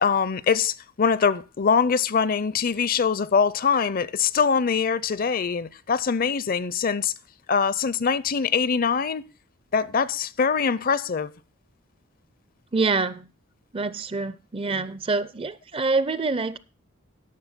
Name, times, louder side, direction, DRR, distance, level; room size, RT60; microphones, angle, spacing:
voice 1, 0.0-7.1 7.5-9.2 9.7-11.3, left 6 dB, 40° left, 0.5 m, -23 dB
voice 2, 12.7-13.3 13.7-16.6, right 3 dB, 25° right, 0.4 m, -26 dB
11.5 x 6.4 x 5.6 m
head